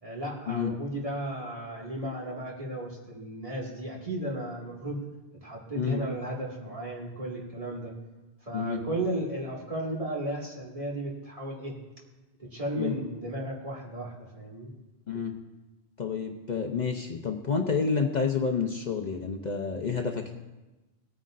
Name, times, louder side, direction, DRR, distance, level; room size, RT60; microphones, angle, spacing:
voice 1, 0.0-5.0 5.4-7.9 8.4-11.8 12.4-14.7, right 1 dB, 35° right, -3 dB, 2.1 m, -34 dB
voice 2, 15.1-15.4 16.0-20.3, left 5 dB, 50° left, 3 dB, 0.8 m, -29 dB
19.0 x 9.3 x 2.5 m, 1.1 s
omnidirectional pair, 1.1 m